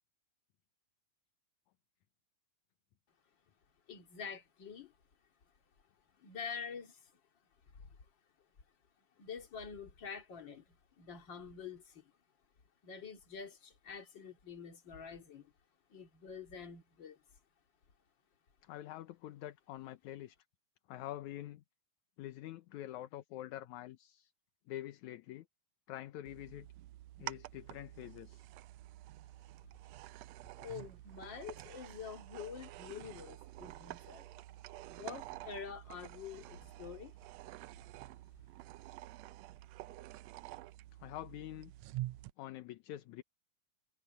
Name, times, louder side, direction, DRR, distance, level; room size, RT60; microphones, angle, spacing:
voice 1, 3.9-5.0 6.2-7.1 7.7-8.0 9.2-12.1 12.8-15.5 15.9-17.2 30.6-34.3 34.9-37.1, left 6 dB, 40° left, 2.8 m, -47 dB
voice 2, 18.6-20.4 20.9-21.6 22.2-24.3 24.7-25.5 25.9-26.7 27.2-28.4 41.0-41.7 42.4-43.2, left 14 dB, 75° left, 2.2 m, -46 dB
sound 1, 26.3-42.3, right 16 dB, 85° right, 1.5 m, -49 dB
omnidirectional pair, 3.6 m